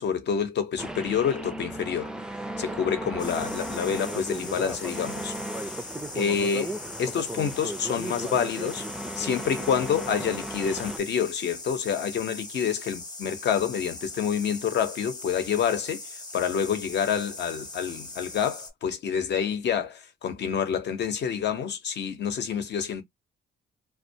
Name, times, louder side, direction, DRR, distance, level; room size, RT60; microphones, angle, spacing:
voice 1, 0.0-2.1 2.6-5.3 6.1-8.8 9.2-16.0 16.3-23.0, left 7 dB, 60° left, 0.8 m, -28 dB
sound 1, 0.8-11.0, right 1 dB, 5° right, 0.4 m, -35 dB
sound 2, 3.2-18.7, left 2 dB, 20° left, 0.8 m, -41 dB
2.2 x 2.1 x 2.7 m
cardioid pair, 90°, 20 cm